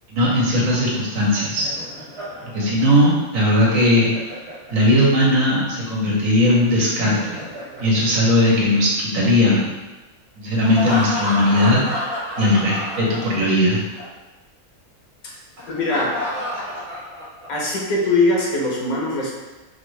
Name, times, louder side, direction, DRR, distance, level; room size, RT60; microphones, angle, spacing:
voice 1, 0.1-1.7 2.4-4.1 4.7-7.4 7.8-9.6 10.4-11.8 12.4-13.8, left 1 dB, 65° right, -5 dB, 1.4 m, -18 dB
Laughter, 1.2-5.1 6.8-8.9 10.6-13.7 13.9-14.1 15.6-17.7, equal, 45° right, 1.4 m, -31 dB
voice 2, 15.7-16.2 17.5-19.4, left 2 dB, 75° left, -3 dB, 1.3 m, -21 dB
4.5 x 2.6 x 3.2 m, 1.1 s
omnidirectional pair, 1.6 m